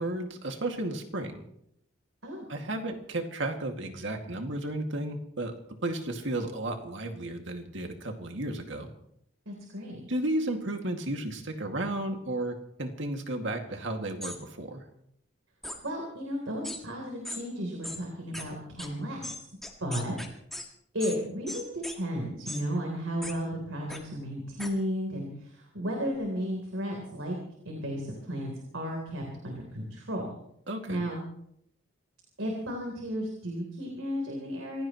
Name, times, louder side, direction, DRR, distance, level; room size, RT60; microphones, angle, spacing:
voice 1, 0.0-1.4 2.5-5.5 5.8-8.9 10.1-14.8 30.7-31.0, right 1 dB, 65° right, 4 dB, 2.2 m, -33 dB
voice 2, 9.5-10.0 15.8-19.5 19.8-20.2 20.9-27.4 27.7-30.2 30.9-31.2 32.4-34.8, equal, 80° right, 1 dB, 3.6 m, -34 dB
sound 1, 14.2-14.4 15.6-15.8 16.6-16.8 17.2-17.4 17.8-18.0 18.3-18.4 18.8-18.9 19.2-20.6 21.0-21.2 21.5-22.0 22.4-22.6 23.2-23.3 23.9-24.0 24.6-24.7, left 1 dB, ahead, 1.9 m, -38 dB
27.0 x 16.5 x 3.1 m, 0.72 s
head